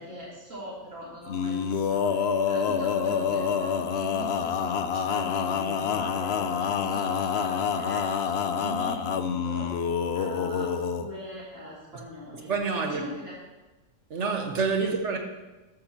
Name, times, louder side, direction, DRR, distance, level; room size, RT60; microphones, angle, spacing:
voice 1, 0.0-12.6 12.8-13.3 14.8-14.9, equal, 80° right, 3.5 m, -42 dB
Male singing, 1.3-11.1, left 6 dB, 60° left, 0.8 m, -27 dB
voice 2, 12.5-13.0 14.1-15.2, right 4 dB, 65° right, 1.6 m, -27 dB
13.5 x 12.5 x 2.9 m
omnidirectional pair, 1.3 m